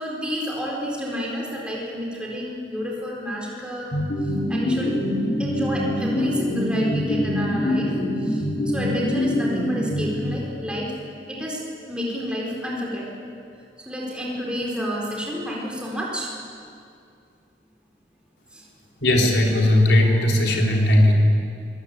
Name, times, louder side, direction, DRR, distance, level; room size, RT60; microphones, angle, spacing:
voice 1, 0.0-5.0 5.4-11.0 11.3-13.3 13.8-16.3 18.5-18.7 20.0-20.3, equal, 5° right, -3 dB, 4.2 m, -30 dB
sound 1, 3.9-10.6, left 1 dB, 55° left, 3.7 m, -24 dB
voice 2, 19.0-21.1, left 1 dB, 80° left, 0 dB, 3.6 m, -17 dB
25.5 x 18.5 x 8.7 m, 2.4 s
head